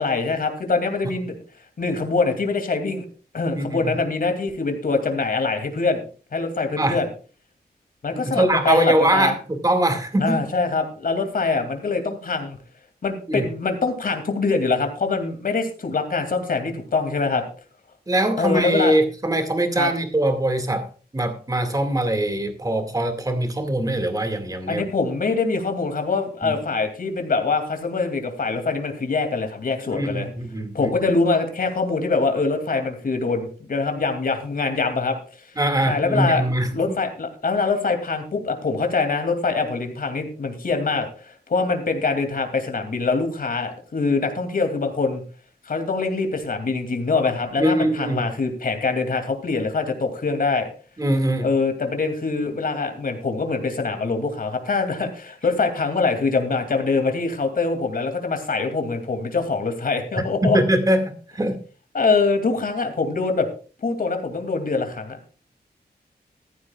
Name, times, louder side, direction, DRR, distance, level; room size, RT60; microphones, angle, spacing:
voice 1, 0.0-1.3 1.8-3.0 3.3-6.0 6.3-7.1 8.0-9.3 10.2-12.6 13.0-17.4 18.4-18.9 19.8-19.9 24.7-30.3 30.7-35.2 35.8-36.4 36.7-45.2 45.7-50.7 51.4-60.6 61.9-63.5 63.8-65.2, left 4 dB, 60° left, 6 dB, 2.8 m, -24 dB
voice 2, 8.3-10.4 13.3-13.5 18.1-20.8 21.1-24.8 26.4-26.5 29.9-30.9 35.6-36.7 47.6-48.2 51.0-51.5 60.4-61.6, right 1 dB, 20° right, 6 dB, 2.2 m, -22 dB
14.5 x 14.5 x 2.4 m, 0.38 s
wide cardioid pair, 135°, 17 cm